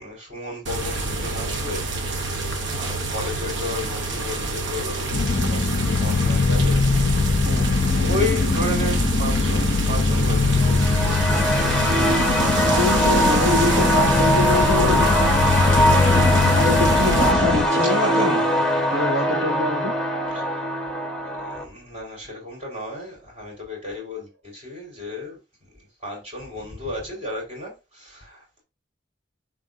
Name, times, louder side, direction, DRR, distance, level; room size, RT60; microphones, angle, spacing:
voice 1, 0.0-7.3 7.6-12.3 17.3-17.5 18.0-18.3 20.3-20.7 21.2-28.6, left 1 dB, 30° right, 4.7 m, -34 dB
sound 1, 0.7-17.3, right 3 dB, 70° right, 1.2 m, -27 dB
sound 2, 5.1-17.7, left 3 dB, 40° left, 0.4 m, -21 dB
sound 3, 10.6-21.6, equal, 5° left, 1.2 m, -22 dB
voice 2, 12.7-15.1 16.4-18.4 18.9-19.9, left 2 dB, 90° right, 2.3 m, -25 dB
11.5 x 4.1 x 2.7 m
head